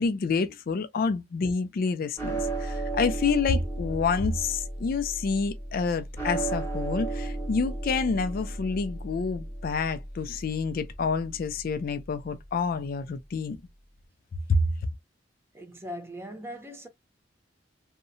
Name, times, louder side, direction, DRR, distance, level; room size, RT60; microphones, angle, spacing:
voice 1, 0.0-13.6 14.5-14.7, left 4 dB, 55° left, 0.4 m, -28 dB
sound 1, 2.2-12.6, right 2 dB, 15° left, 0.9 m, -35 dB
voice 2, 15.5-16.9, equal, 15° right, 0.5 m, -40 dB
2.7 x 2.1 x 2.5 m
head